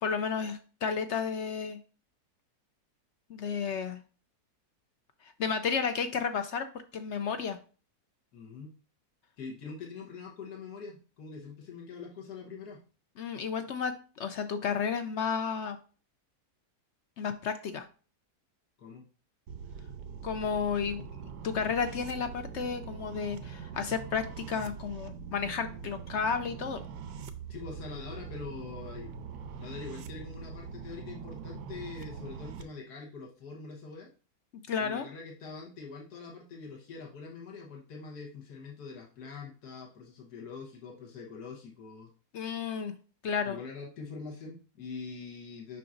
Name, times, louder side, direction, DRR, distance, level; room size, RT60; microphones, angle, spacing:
voice 1, 0.0-1.8 3.3-4.0 5.2-6.7 6.9-7.6 13.2-15.8 17.2-17.8 20.2-21.1 21.4-26.8 34.7-35.0 42.3-42.9 43.2-43.6, left 6 dB, 70° left, 9 dB, 0.7 m, -32 dB
voice 2, 8.3-8.7 9.4-12.8 18.8-19.0 27.5-29.1 29.6-34.1 34.8-42.1 43.5-45.8, left 4 dB, 85° left, -1 dB, 1.8 m, -44 dB
sound 1, 19.5-32.6, right 6 dB, 80° right, 1.2 m, -43 dB
6.9 x 5.8 x 2.5 m, 0.37 s
omnidirectional pair, 1.7 m